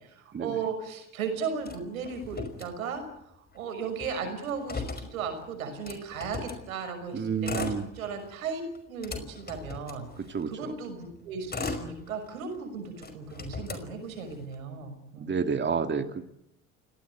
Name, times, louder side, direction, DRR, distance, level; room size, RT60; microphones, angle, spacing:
voice 1, 0.0-3.0 3.5-10.1 10.5-15.4, right 5 dB, 90° right, 7 dB, 6.2 m, -36 dB
Motor vehicle (road), 1.6-3.2 3.5-3.6 3.9-6.6 7.3-8.3 8.7-10.6 11.1-12.6 13.0-14.6, left 4 dB, 25° left, 5.4 m, -38 dB
voice 2, 7.1-7.9 10.3-10.8 15.2-16.2, right 6 dB, 25° right, 7 dB, 2.2 m, -29 dB
28.5 x 19.0 x 9.5 m, 0.81 s
hypercardioid pair, 75°, 40 cm